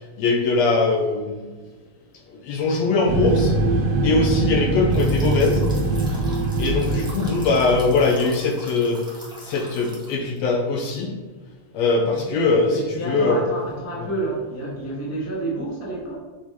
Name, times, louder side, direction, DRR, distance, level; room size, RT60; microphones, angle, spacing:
voice 1, 0.2-1.4 2.4-3.6 4.0-5.7 6.6-9.0 9.4-11.1 11.7-13.4, left 3 dB, 75° left, 1 dB, 1.7 m, -21 dB
sound 1, 3.1-8.3, right 2 dB, 75° right, 1.9 m, -23 dB
sound 2, 4.9-10.4, equal, 5° right, 0.3 m, -42 dB
voice 2, 12.7-16.2, right 2 dB, 10° left, -5 dB, 0.8 m, -29 dB
7.7 x 4.4 x 3.5 m, 1.3 s
omnidirectional pair, 3.4 m